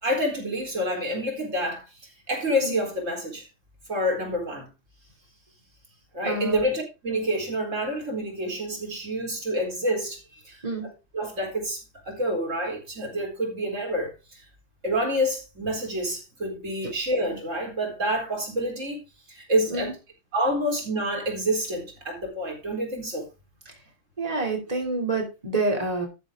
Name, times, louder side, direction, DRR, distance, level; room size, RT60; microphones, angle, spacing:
voice 1, 0.0-1.8 2.3-3.5 3.9-4.7 6.1-10.6 10.8-14.1 14.8-19.0 19.3-20.0 20.3-23.3, equal, 85° right, 4.4 m, -28 dB
voice 2, 6.2-6.6 10.6-10.9 19.7-19.9 24.2-26.1, right 2 dB, 30° right, 3.2 m, -27 dB
13.0 x 6.9 x 3.8 m
omnidirectional pair, 1.3 m